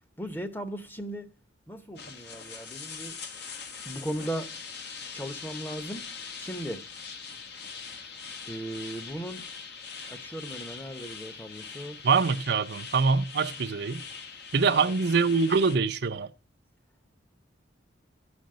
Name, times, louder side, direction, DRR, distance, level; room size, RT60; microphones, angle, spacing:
voice 1, 0.2-1.3 1.7-3.2 3.9-4.5 5.1-6.0 6.4-6.8 8.5-9.4 10.1-12.0 14.6-14.8, right 1 dB, 10° left, 0.9 m, -37 dB
sound 1, 2.0-15.8, left 5 dB, 55° left, 1.2 m, -42 dB
voice 2, 12.0-14.0 14.5-16.3, right 4 dB, 55° right, 0.5 m, -24 dB
12.5 x 5.2 x 7.6 m
head